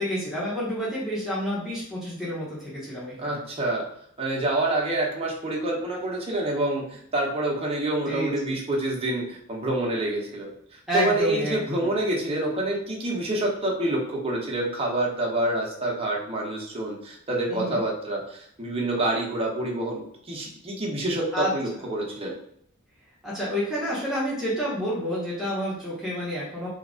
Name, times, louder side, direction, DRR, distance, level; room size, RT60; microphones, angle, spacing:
voice 1, 0.0-3.4 8.1-8.5 10.9-11.9 17.5-17.8 21.3-21.5 23.2-26.7, equal, ahead, -9 dB, 0.9 m, -29 dB
voice 2, 3.2-3.8 4.2-22.3, right 1 dB, 25° right, -2 dB, 0.8 m, -27 dB
2.8 x 2.4 x 3.7 m, 0.68 s
head